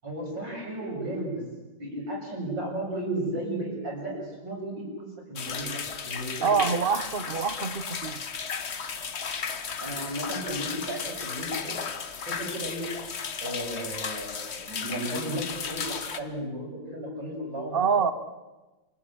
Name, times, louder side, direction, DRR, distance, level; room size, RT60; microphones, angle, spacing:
voice 1, 0.0-1.4 1.8-6.5 9.8-11.8 12.2-12.8 13.4-18.1, right 1 dB, 60° right, -1 dB, 8.4 m, -34 dB
sound 1, 5.4-16.2, left 6 dB, 40° left, 1.1 m, -34 dB
voice 2, 6.4-8.2 17.7-18.1, right 6 dB, 40° right, 12 dB, 0.9 m, -25 dB
28.0 x 19.5 x 8.9 m, 1.1 s
omnidirectional pair, 2.3 m